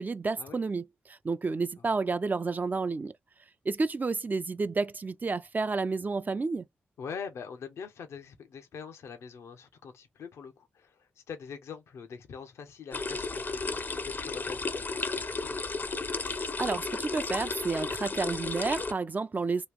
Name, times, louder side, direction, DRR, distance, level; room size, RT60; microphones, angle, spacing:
voice 1, 0.0-3.1 3.7-6.6 16.3-19.7, right 4 dB, 40° right, 0.5 m, -31 dB
voice 2, 7.0-15.6, left 6 dB, 85° left, 0.7 m, -44 dB
fountain water, 12.9-18.9, left 3 dB, 45° left, 0.6 m, -33 dB
3.1 x 2.4 x 3.4 m
cardioid pair, 50°, 5 cm